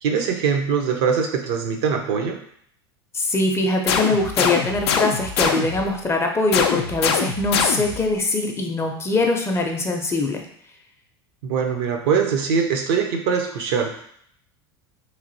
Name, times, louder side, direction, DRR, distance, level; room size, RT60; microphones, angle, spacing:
voice 1, 0.0-2.4 11.4-14.0, right 6 dB, 65° right, 4 dB, 0.6 m, -22 dB
voice 2, 3.1-10.4, left 2 dB, 20° left, 2 dB, 0.5 m, -22 dB
sound 1, 3.9-5.9 6.5-8.1, left 6 dB, 75° left, 0.4 m, -23 dB
3.2 x 2.5 x 2.6 m, 0.66 s
hypercardioid pair, 85°, 14 cm